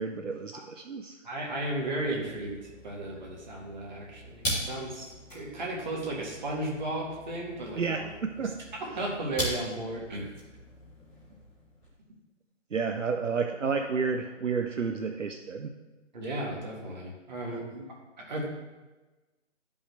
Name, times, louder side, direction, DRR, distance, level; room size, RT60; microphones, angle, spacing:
voice 1, 0.0-1.2 7.8-8.6 12.7-15.7 17.5-17.6, right 5 dB, 75° right, 5 dB, 0.7 m, -31 dB
voice 2, 1.2-2.6 2.8-8.1 8.4-8.5 8.8-10.3 16.1-17.9 18.2-18.4, right 1 dB, 35° right, -2 dB, 1.8 m, -35 dB
sound 1, 1.4-11.9, equal, 10° left, 1.3 m, -40 dB
11.5 x 5.4 x 3.3 m, 1.2 s
figure-of-eight pair, 155°, 38 cm